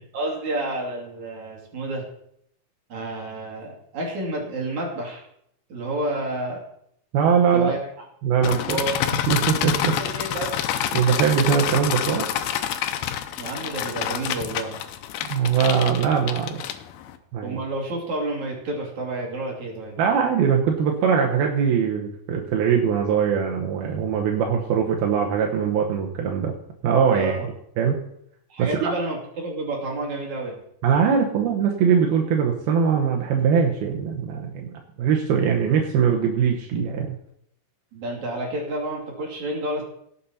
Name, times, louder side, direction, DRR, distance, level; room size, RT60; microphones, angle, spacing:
voice 1, 0.1-2.1 2.9-5.2 5.7-6.6 7.5-7.8 8.5-9.0 9.9-10.6 13.4-14.8 17.4-20.0 27.1-27.5 28.5-30.6 37.9-39.8, right 2 dB, 55° right, -1 dB, 3.9 m, -30 dB
voice 2, 7.1-7.7 8.2-8.8 9.3-10.0 10.9-12.3 15.3-16.6 17.3-17.6 20.0-26.5 26.8-27.3 27.8-28.0 28.6-28.9 30.8-34.7 35.0-37.2, right 7 dB, 85° right, 1 dB, 3.0 m, -21 dB
sound 1, 8.4-17.2, left 11 dB, 85° left, 2.7 m, -28 dB
17.5 x 7.4 x 4.2 m, 0.72 s
omnidirectional pair, 4.2 m